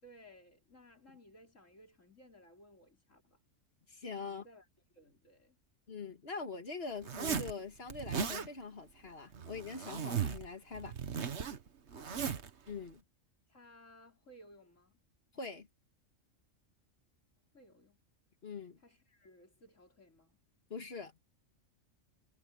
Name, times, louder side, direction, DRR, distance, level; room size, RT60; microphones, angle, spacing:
voice 1, 0.0-3.4 4.2-5.6 11.9-12.4 13.5-15.0 17.5-18.0 18.8-20.4, equal, 85° left, 5.4 m, -60 dB
voice 2, 3.9-4.4 5.9-10.9 12.7-13.0 15.3-15.7 18.4-18.8 20.7-21.1, left 4 dB, 55° left, 2.0 m, -43 dB
Zipper (clothing), 7.0-7.5 7.9-8.5 9.3-10.5 10.7-12.5, right 7 dB, 65° right, 1.5 m, -37 dB
omnidirectional pair, 1.3 m